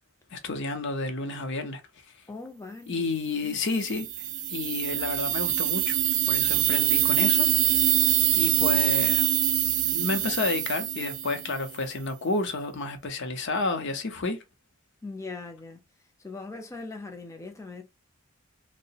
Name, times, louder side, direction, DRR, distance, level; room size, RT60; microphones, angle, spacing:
voice 1, 0.3-1.8 2.9-4.1 4.5-6.0 6.3-7.5 8.3-9.3 9.9-14.4, left 3 dB, 55° left, 0.6 m, -30 dB
voice 2, 2.3-3.1 3.4-3.6 15.0-15.8 16.2-17.8, left 3 dB, 15° left, 0.5 m, -40 dB
sound 1, 3.8-11.7, right 12 dB, 80° right, 0.4 m, -24 dB
2.7 x 2.0 x 2.7 m
head